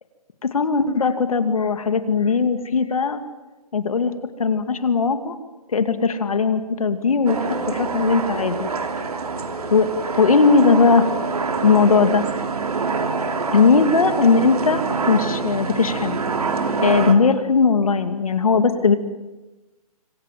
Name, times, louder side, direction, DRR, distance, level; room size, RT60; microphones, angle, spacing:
voice 1, 0.4-3.2 3.7-4.1 4.4-5.4 5.7-8.7 9.7-9.9 10.1-11.1 11.6-12.2 13.5-16.2 16.8-19.0, left 5 dB, 65° left, 9 dB, 2.6 m, -18 dB
sound 1, 7.3-17.1, right 4 dB, 75° right, 3.3 m, -25 dB
26.0 x 25.5 x 7.6 m, 1.1 s
hypercardioid pair, 170°, 19 cm